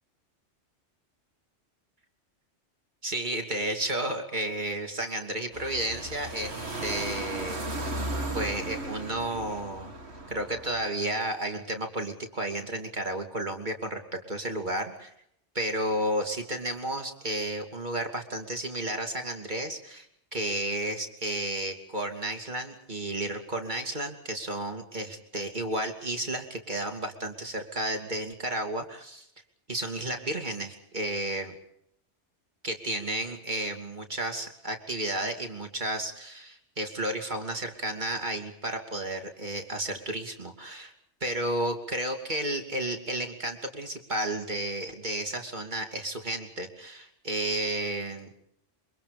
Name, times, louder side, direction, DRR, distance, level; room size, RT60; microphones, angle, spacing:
voice 1, 3.0-7.9 8.3-9.9 10.3-15.1 15.5-20.1 20.3-29.3 29.7-31.6 32.6-40.9 41.2-48.4, right 1 dB, 40° right, 3 dB, 3.0 m, -32 dB
sound 1, 5.5-10.7, right 2 dB, 65° right, 2.3 m, -35 dB
27.0 x 24.5 x 5.3 m, 0.72 s
omnidirectional pair, 1.2 m